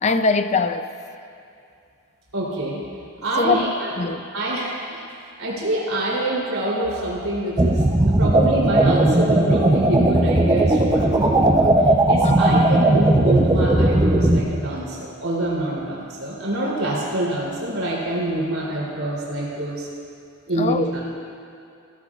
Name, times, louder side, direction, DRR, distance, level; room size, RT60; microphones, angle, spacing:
voice 1, 0.0-0.9 3.4-4.2 12.2-12.7 20.6-20.9, left 3 dB, 35° left, 9 dB, 0.5 m, -22 dB
voice 2, 2.3-2.8 3.2-3.9 4.3-5.0 5.4-19.9 20.5-21.0, right 1 dB, 90° right, -6 dB, 3.3 m, -26 dB
sound 1, 7.6-14.4, right 1 dB, 20° right, 0.7 m, -17 dB
17.0 x 13.0 x 2.4 m, 2.5 s
head